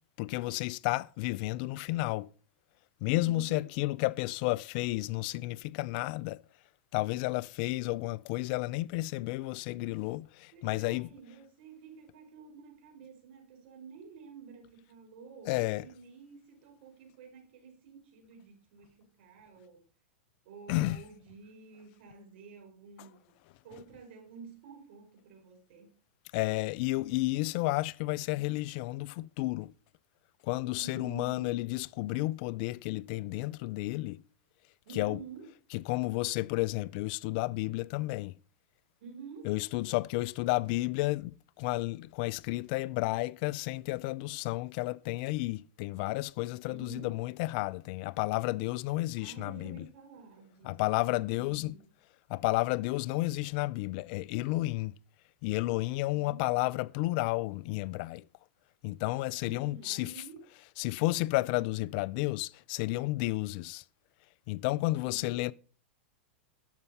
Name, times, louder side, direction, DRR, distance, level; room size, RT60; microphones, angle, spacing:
voice 1, 0.2-2.3 3.0-6.4 6.9-11.1 15.5-15.8 20.7-21.0 26.3-29.7 30.5-34.2 35.0-35.2 35.7-38.3 39.4-41.3 41.6-49.8 50.6-51.7 52.3-54.9 55.4-58.2 58.8-60.1 60.8-63.8 64.5-65.5, left 20 dB, 50° left, 0.4 m, -32 dB
voice 2, 3.2-3.6 10.5-19.8 20.4-23.4 23.6-25.9 30.8-31.6 34.8-35.5 39.0-39.5 46.7-47.1 49.2-50.8 51.3-51.9 56.0-56.4 59.4-60.5 64.8-65.4, right 5 dB, 65° right, 4.6 m, -50 dB
11.5 x 6.6 x 5.5 m
hypercardioid pair, 125°, 6 cm